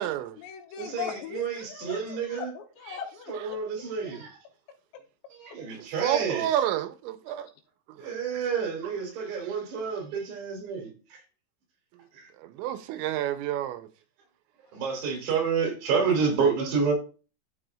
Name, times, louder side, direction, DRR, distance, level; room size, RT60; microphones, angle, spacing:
voice 1, 0.0-3.6, left 8 dB, 75° left, 3.1 m, -40 dB
voice 2, 0.8-2.5 3.3-4.4 5.4-6.5 8.0-11.2 12.1-12.3 14.7-16.9, right 5 dB, 65° right, 4.8 m, -29 dB
voice 3, 6.0-7.5 12.6-13.9, right 11 dB, 90° right, 3.0 m, -29 dB
13.0 x 6.2 x 2.5 m
omnidirectional pair, 5.3 m